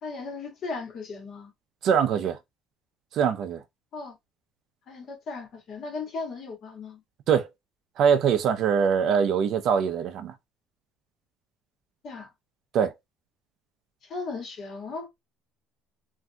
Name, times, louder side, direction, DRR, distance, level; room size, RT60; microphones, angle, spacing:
voice 1, 0.0-1.5 3.9-4.1 4.9-7.0 12.0-12.3 14.0-15.1, left 4 dB, 45° left, 1.7 m, -36 dB
voice 2, 1.8-2.4 3.1-3.6 7.3-7.5 8.0-10.3 12.7-12.9, right 7 dB, 50° right, 0.5 m, -23 dB
3.6 x 2.6 x 2.2 m
cardioid pair, 160°, 0 cm